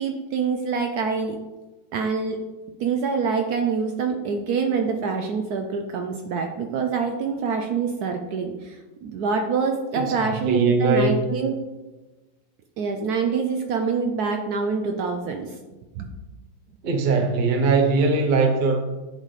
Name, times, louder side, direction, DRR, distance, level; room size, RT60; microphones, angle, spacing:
voice 1, 0.0-1.4 1.9-2.4 2.8-8.8 9.0-11.5 12.8-15.5 16.0-16.1, right 5 dB, 70° right, 4 dB, 1.0 m, -25 dB
voice 2, 9.9-11.2 16.8-18.7, right 3 dB, 45° right, 3 dB, 0.6 m, -21 dB
9.8 x 4.1 x 3.2 m, 1.2 s
omnidirectional pair, 2.0 m